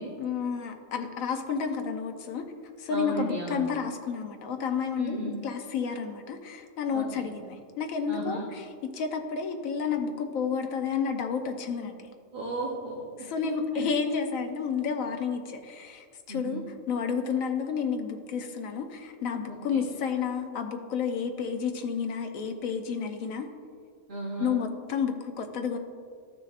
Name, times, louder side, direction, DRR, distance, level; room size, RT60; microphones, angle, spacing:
voice 1, 0.2-2.4 2.8-11.9 13.2-23.5 24.4-25.8, left 6 dB, 90° left, 5 dB, 1.2 m, -31 dB
voice 2, 2.9-3.6 5.0-5.3 6.9-7.3 8.1-8.5 12.3-13.9 16.3-16.6 19.7-19.8 24.1-24.6, right 2 dB, 45° right, -4 dB, 1.0 m, -35 dB
13.5 x 6.2 x 2.5 m, 2.1 s
omnidirectional pair, 1.4 m